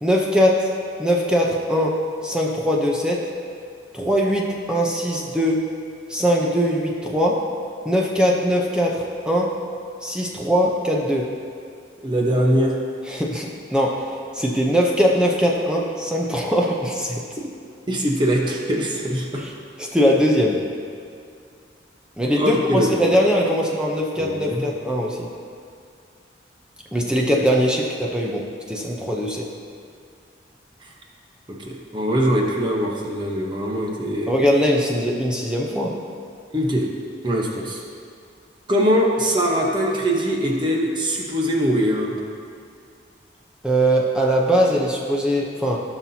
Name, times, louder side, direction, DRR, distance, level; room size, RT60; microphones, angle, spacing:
voice 1, 0.0-0.7 1.0-3.3 3.9-5.7 6.1-7.4 7.8-9.5 10.0-11.3 13.1-17.2 19.4-19.5 19.8-20.6 22.2-25.3 26.9-29.5 34.3-36.0 43.6-45.8, equal, 5° right, -2 dB, 0.7 m, -21 dB
voice 2, 12.0-12.7 17.9-19.4 22.3-22.9 24.2-24.7 30.8-30.9 31.5-34.3 36.5-36.9 37.2-37.8 38.7-42.1, equal, 25° right, -1 dB, 1.0 m, -22 dB
16.5 x 6.0 x 2.8 m, 2.4 s
head